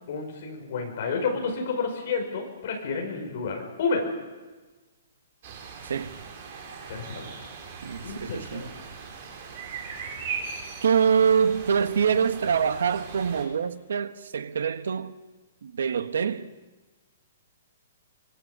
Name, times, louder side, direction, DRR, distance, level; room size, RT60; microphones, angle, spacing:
voice 1, 0.1-4.1 6.9-7.3 8.0-8.7, left 4 dB, 40° left, 5.2 m, -30 dB
sound 1, 5.4-13.4, right 5 dB, 30° right, 3.7 m, -39 dB
voice 2, 5.8-6.2 7.8-8.7 10.8-15.1 15.6-16.5, right 7 dB, 80° right, 1.3 m, -25 dB
24.0 x 21.5 x 6.9 m
hypercardioid pair, 180°, 0 cm